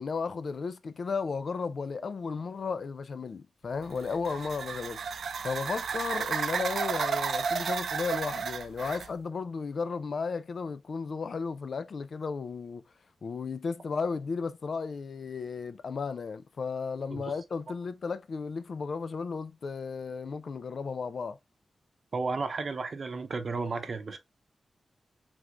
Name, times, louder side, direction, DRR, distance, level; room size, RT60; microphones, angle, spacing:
voice 1, 0.0-5.0 5.4-12.8 13.2-21.4, left 5 dB, 60° left, 0.5 m, -34 dB
sound 1, 3.8-9.1, right 6 dB, 85° right, 0.4 m, -32 dB
voice 2, 22.1-24.2, right 4 dB, 50° right, 0.7 m, -33 dB
4.9 x 3.6 x 2.4 m
wide cardioid pair, 125°, 0 cm